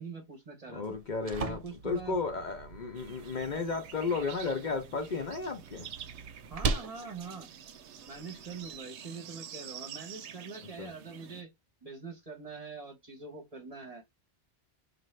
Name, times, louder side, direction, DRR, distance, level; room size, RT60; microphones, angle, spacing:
voice 1, 0.0-0.8 1.5-2.2 6.5-7.5 8.1-11.5 11.8-14.0, right 4 dB, 35° right, 0.9 m, -44 dB
voice 2, 0.7-5.9 10.8-10.9, left 4 dB, 50° left, 0.8 m, -34 dB
sound 1, 0.8-8.8, right 4 dB, 60° right, 0.4 m, -40 dB
sound 2, 3.0-11.4, right 9 dB, 90° right, 0.9 m, -48 dB
4.8 x 2.5 x 3.1 m
omnidirectional pair, 1.1 m